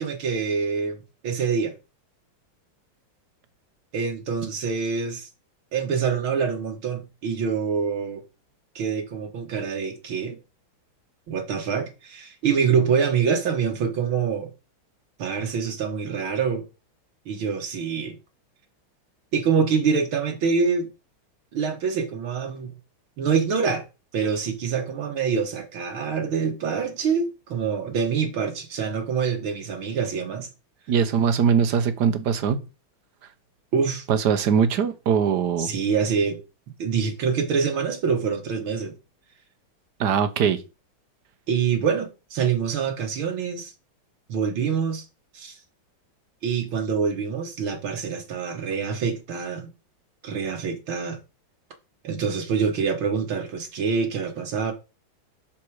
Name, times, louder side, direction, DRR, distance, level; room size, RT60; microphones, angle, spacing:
voice 1, 0.0-1.7 3.9-5.3 5.7-8.2 8.8-10.4 11.3-14.5 15.2-16.6 17.3-18.2 19.3-20.9 21.5-22.7 23.2-23.9 24.1-30.5 33.7-34.1 35.6-36.4 36.8-38.9 41.5-43.7 44.3-45.1 45.3-45.6 46.4-49.7 50.2-51.2 52.0-54.7, right 6 dB, 80° right, 2.3 m, -25 dB
voice 2, 30.9-32.6 34.1-35.7 40.0-40.6, right 7 dB, 60° right, 1.4 m, -21 dB
7.1 x 6.1 x 4.8 m
omnidirectional pair, 2.2 m